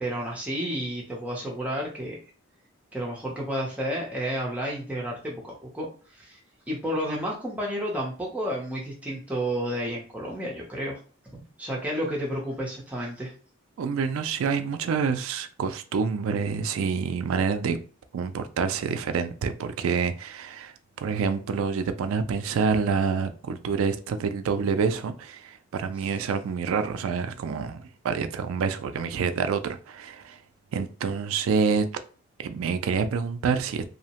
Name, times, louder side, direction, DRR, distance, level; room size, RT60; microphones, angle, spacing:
voice 1, 0.0-2.2 2.9-5.9 6.1-6.4 6.7-11.0 11.3-13.3, equal, 5° right, 0.6 m, -31 dB
voice 2, 13.8-17.8 18.1-30.4 30.7-31.9 32.4-33.8, right 5 dB, 75° right, 0.3 m, -27 dB
2.7 x 2.1 x 2.8 m
head